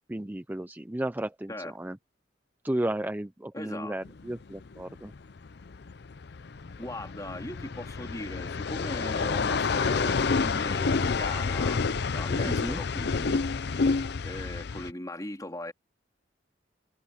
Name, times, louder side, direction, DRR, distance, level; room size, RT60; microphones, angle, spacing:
voice 1, 0.1-2.0 2.6-5.1 12.4-12.8, right 1 dB, 10° right, 0.5 m, -33 dB
voice 2, 3.5-3.9 6.8-11.9 12.1-13.4 14.2-15.7, left 1 dB, 20° left, 3.0 m, -38 dB
sound 1, 4.1-14.9, left 4 dB, 60° left, 0.6 m, -29 dB
head